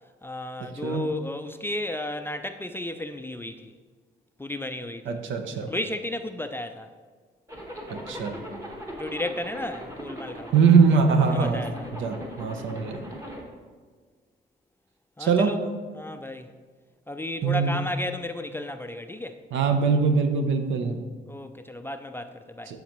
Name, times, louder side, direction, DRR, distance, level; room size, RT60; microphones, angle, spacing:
voice 1, 0.2-3.7 4.4-5.2 5.6-6.9 9.0-10.6 11.3-11.9 15.2-15.7 15.9-16.5 17.1-19.4 21.3-22.7, left 1 dB, 10° left, 7 dB, 0.3 m, -33 dB
voice 2, 5.1-5.7 7.9-8.4 10.5-11.6 12.0-13.0 15.2-15.5 17.4-17.8 19.5-21.0 22.7-22.8, right 5 dB, 75° right, 6 dB, 0.8 m, -22 dB
Zipper (clothing), 7.5-13.4, equal, 15° right, 1.2 m, -39 dB
11.5 x 3.9 x 3.0 m, 1.5 s
cardioid pair, 90°, 20 cm